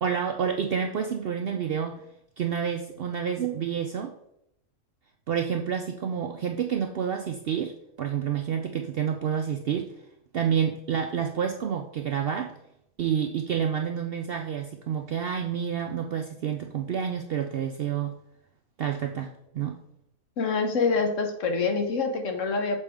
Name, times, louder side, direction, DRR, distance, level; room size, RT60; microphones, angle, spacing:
voice 1, 0.0-2.0 2.4-4.1 5.3-7.7 8.0-9.9 10.3-12.5 13.0-18.2 18.8-19.8, right 8 dB, 65° right, 4 dB, 0.6 m, -29 dB
voice 2, 20.4-22.8, left 4 dB, 70° left, 5 dB, 1.2 m, -26 dB
6.8 x 4.5 x 3.4 m, 0.76 s
omnidirectional pair, 1.4 m